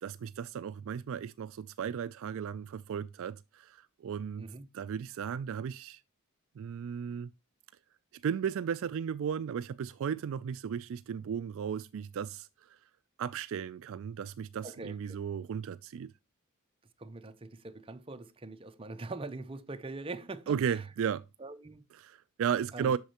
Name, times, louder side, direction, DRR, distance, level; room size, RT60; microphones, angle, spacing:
voice 1, 0.0-4.4 4.7-6.0 6.6-7.3 8.2-12.8 13.2-16.1 20.5-21.3 21.9-23.0, right 7 dB, 60° right, 0.3 m, -35 dB
voice 2, 14.6-15.2 17.0-20.8 21.4-21.9 22.7-22.9, right 3 dB, 25° right, 0.6 m, -43 dB
8.2 x 6.3 x 2.9 m
head